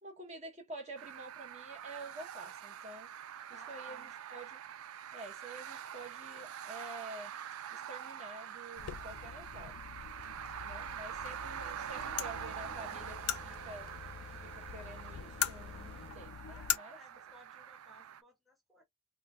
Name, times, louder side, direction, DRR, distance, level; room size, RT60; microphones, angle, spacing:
voice 1, 0.0-3.1 3.5-4.6 5.1-7.3 7.7-9.7 10.6-13.1 13.4-13.9 14.3-17.0, right 2 dB, 35° right, 1.3 m, -49 dB
sound 1, 1.0-18.2, right 9 dB, 70° right, 0.4 m, -45 dB
voice 2, 3.5-4.1 10.7-11.2 12.0-13.0 13.3-13.5 16.4-18.8, equal, ahead, 0.9 m, -61 dB
sound 2, 8.8-16.8, left 10 dB, 80° left, 0.4 m, -41 dB
sound 3, 12.3-16.2, left 1 dB, 30° left, 0.7 m, -54 dB
3.7 x 2.3 x 2.5 m
head